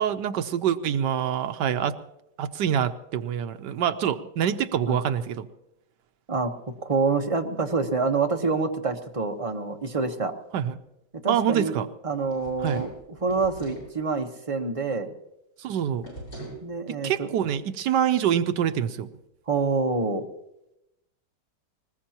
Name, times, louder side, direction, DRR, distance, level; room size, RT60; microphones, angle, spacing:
voice 1, 0.0-2.0 2.4-5.5 10.5-10.8 11.3-11.9 12.6-12.8 15.6-16.1 16.9-19.1, right 9 dB, 75° right, 10 dB, 1.4 m, -25 dB
voice 2, 6.8-10.3 11.2-11.8 12.0-12.9 13.2-15.1 16.6-17.3 19.5-20.3, right 4 dB, 20° right, 4 dB, 1.0 m, -26 dB
sound 1, 12.2-13.9 16.0-16.6, right 1 dB, 85° left, 7.8 m, -40 dB
20.5 x 20.0 x 2.9 m, 0.84 s
omnidirectional pair, 1.9 m